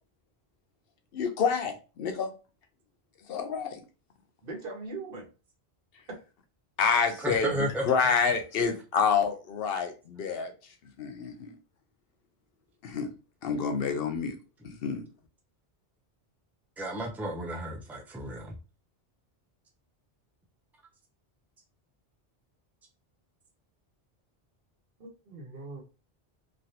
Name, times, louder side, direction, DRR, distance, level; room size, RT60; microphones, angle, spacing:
voice 1, 1.1-2.3 3.3-3.8 6.8-10.5 11.0-11.6 12.8-13.1 13.4-14.4 14.6-15.1, left 6 dB, 70° left, 6 dB, 0.8 m, -28 dB
voice 2, 4.4-5.3 25.0-25.8, right 3 dB, 65° right, 0 dB, 1.0 m, -40 dB
voice 3, 7.2-7.8 16.8-18.5, right 1 dB, ahead, 1 dB, 0.4 m, -33 dB
3.2 x 2.4 x 2.7 m, 0.33 s
omnidirectional pair, 1.0 m